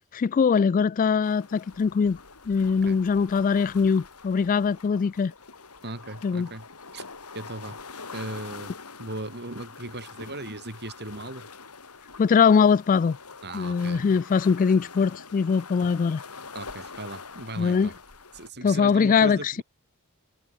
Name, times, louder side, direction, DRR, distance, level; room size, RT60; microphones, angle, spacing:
voice 1, 0.1-2.2 2.5-5.3 6.2-6.5 12.2-13.2 13.5-16.2 17.6-17.9 18.6-19.6, left 6 dB, 35° left, 0.3 m, -22 dB
sound 1, 1.2-18.5, left 4 dB, 90° left, 4.5 m, -44 dB
voice 2, 2.6-3.0 5.8-6.7 6.9-7.0 7.3-7.8 8.1-8.7 9.0-11.5 13.4-14.2 16.5-17.9 18.3-19.6, right 2 dB, 50° right, 6.3 m, -37 dB
head